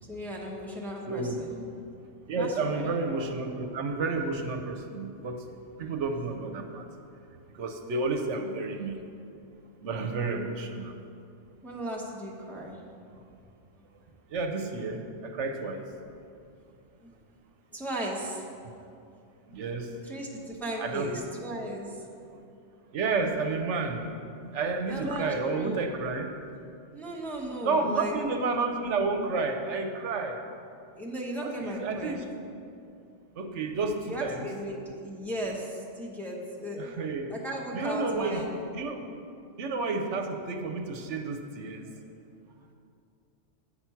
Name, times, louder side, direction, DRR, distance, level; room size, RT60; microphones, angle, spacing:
voice 1, 0.0-1.5 2.4-2.9 5.9-6.0 11.6-13.2 17.0-17.1 17.7-18.9 19.5-19.6 20.0-22.1 24.9-25.8 26.9-28.2 30.9-32.2 33.0-33.1 34.1-37.0 37.3-38.5 41.8-42.1, equal, ahead, -2 dB, 0.9 m, -36 dB
voice 2, 1.1-1.4 2.3-5.5 5.8-6.9 7.3-9.0 9.8-10.9 14.3-15.9 19.5-20.0 20.8-21.2 22.9-24.0 24.5-26.3 27.6-30.4 31.4-32.2 33.4-34.5 36.8-37.3 37.7-38.4 38.7-39.1 39.6-41.9, right 3 dB, 75° right, 5 dB, 1.0 m, -31 dB
8.7 x 5.9 x 5.7 m, 2.5 s
omnidirectional pair, 1.2 m